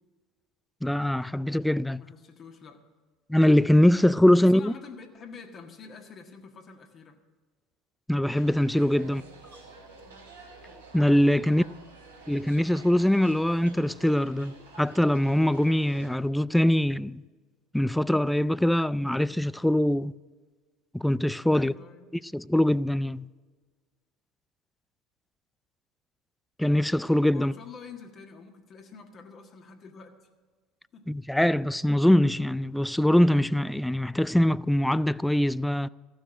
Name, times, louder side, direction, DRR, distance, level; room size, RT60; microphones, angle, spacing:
voice 1, 0.8-2.0 3.3-4.7 8.1-9.2 10.9-11.6 12.3-17.2 17.7-20.1 20.9-21.7 22.2-23.3 26.6-27.5 31.1-35.9, left 1 dB, 5° left, 0.3 m, -23 dB
voice 2, 2.0-2.8 4.3-7.2 9.0-9.2 11.4-11.8 21.5-22.0 27.3-30.2 30.9-31.1, left 5 dB, 40° left, 1.6 m, -47 dB
sound 1, 8.3-16.1, right 3 dB, 90° right, 3.0 m, -49 dB
14.5 x 6.4 x 9.0 m
hypercardioid pair, 70°, 0 cm